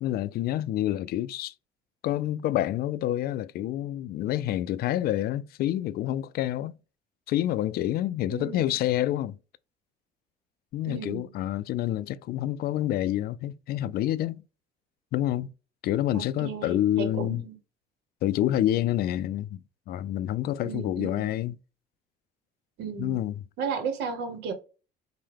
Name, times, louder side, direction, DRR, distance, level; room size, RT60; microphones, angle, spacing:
voice 1, 0.0-1.5 2.0-6.8 7.3-9.4 10.7-14.4 15.1-15.5 15.8-17.4 18.2-19.6 19.9-21.6 23.0-23.3, left 13 dB, 65° left, 0.4 m, -28 dB
voice 2, 8.3-8.7 10.9-11.2 16.1-17.6 20.6-21.3 22.8-23.3 23.6-24.5, right 6 dB, 90° right, 1.0 m, -34 dB
5.6 x 2.2 x 3.2 m
cardioid pair, 110°, 17 cm